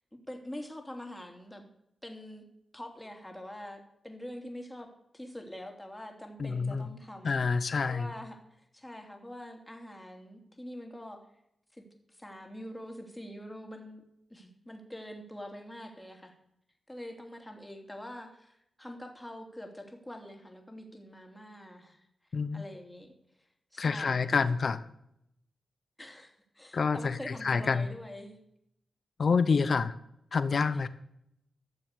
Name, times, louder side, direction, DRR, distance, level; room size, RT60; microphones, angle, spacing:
voice 1, 0.3-1.7 2.0-2.4 2.7-7.4 7.9-8.4 8.7-11.2 11.7-11.8 12.1-14.0 14.3-16.3 16.9-22.0 22.5-23.1 23.7-24.5 26.0-28.4, left 1 dB, 10° left, 3 dB, 3.0 m, -45 dB
voice 2, 6.4-6.9 7.2-8.1 22.3-22.6 23.8-24.8 26.7-27.9 29.2-29.9 30.3-30.9, left 5 dB, 65° left, 14 dB, 0.8 m, -27 dB
13.5 x 6.9 x 6.8 m, 0.78 s
cardioid pair, 45°, 0 cm